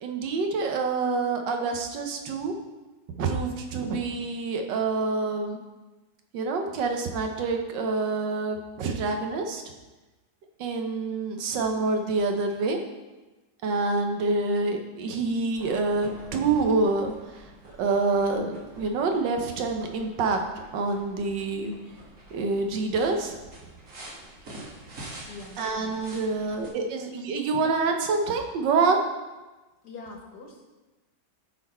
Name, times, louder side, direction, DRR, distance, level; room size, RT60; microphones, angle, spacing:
voice 1, 0.0-2.5 3.2-5.6 6.3-9.6 10.6-12.8 13.6-17.1 17.8-20.4 20.7-21.7 22.3-23.4 25.6-29.0, right 3 dB, 85° right, 4 dB, 1.6 m, -26 dB
sound 1, 15.5-26.7, right 1 dB, 55° right, 2.1 m, -47 dB
voice 2, 25.2-26.5 29.8-30.7, left 3 dB, 65° left, 1 dB, 1.8 m, -44 dB
11.0 x 4.2 x 4.3 m, 1.2 s
omnidirectional pair, 1.9 m